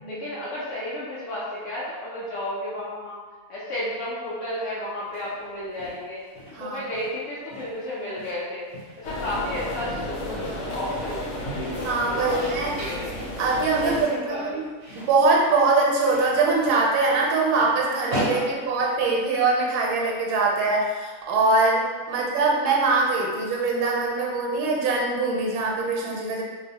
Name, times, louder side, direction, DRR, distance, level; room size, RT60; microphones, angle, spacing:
voice 1, 0.1-3.2 3.5-6.2 6.6-8.7 9.0-12.4 12.8-13.1 13.8-14.6 18.3-18.7 22.1-22.4, left 1 dB, 65° left, -7 dB, 0.8 m, -33 dB
sound 1, 5.0-19.5, equal, 50° right, 0.7 m, -39 dB
sound 2, 9.0-14.0, left 1 dB, 85° left, 1.1 m, -32 dB
voice 2, 11.8-12.7 13.4-14.6 14.9-26.4, right 3 dB, 80° right, -2 dB, 1.1 m, -23 dB
2.6 x 2.0 x 2.7 m, 1.4 s
omnidirectional pair, 1.6 m